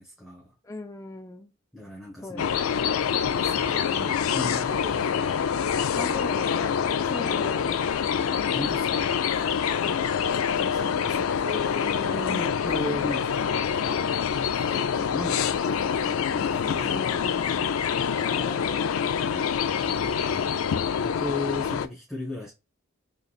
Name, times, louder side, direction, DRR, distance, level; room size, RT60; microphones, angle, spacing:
voice 1, 0.0-0.5 1.7-2.4 3.2-5.1 7.0-7.2 8.5-9.5 10.5-17.1 17.8-18.4 19.2-20.5 21.0-22.5, left 2 dB, ahead, 1.0 m, -37 dB
voice 2, 0.6-1.5 2.2-2.7 5.9-8.0 9.7-10.1 16.7-17.7 18.2-19.0, left 2 dB, 15° left, 0.4 m, -39 dB
sound 1, 2.4-21.9, left 7 dB, 75° left, 0.4 m, -26 dB
4.0 x 3.2 x 2.3 m
head